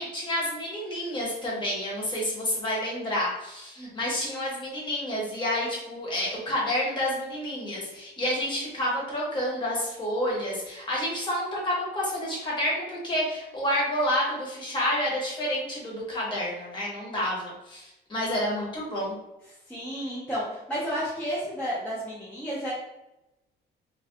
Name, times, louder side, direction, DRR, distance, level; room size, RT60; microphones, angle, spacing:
voice 1, 0.0-19.1, left 1 dB, 25° left, -4 dB, 0.9 m, -29 dB
voice 2, 19.7-22.7, equal, 5° left, -9 dB, 0.6 m, -31 dB
2.7 x 2.2 x 3.3 m, 0.94 s
cardioid pair, 175°, 18 cm